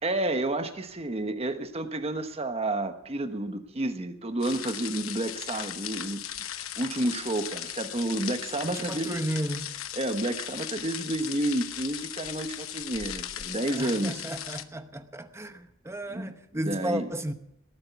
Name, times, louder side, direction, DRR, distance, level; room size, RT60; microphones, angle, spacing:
voice 1, 0.0-6.2 6.6-9.2 10.0-14.2 16.1-16.3 16.7-17.1, right 1 dB, 30° right, 1.2 m, -30 dB
sound 1, 4.4-14.6, left 11 dB, 85° left, 0.9 m, -37 dB
voice 2, 8.6-9.7 13.7-17.3, right 1 dB, 15° right, 0.9 m, -34 dB
19.0 x 8.8 x 8.2 m
head